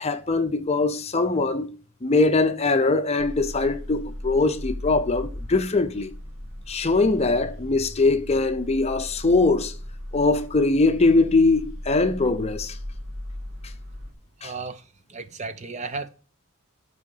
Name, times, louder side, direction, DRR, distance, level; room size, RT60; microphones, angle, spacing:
voice 1, 0.0-1.7 2.0-6.1 6.7-9.7 10.1-12.8 14.4-14.5, left 3 dB, 30° left, 0.7 m, -22 dB
sound 1, 3.2-14.1, left 1 dB, 65° right, 3.0 m, -37 dB
voice 2, 14.4-14.8 15.1-16.1, right 4 dB, 35° right, 0.6 m, -34 dB
9.3 x 4.9 x 5.4 m
head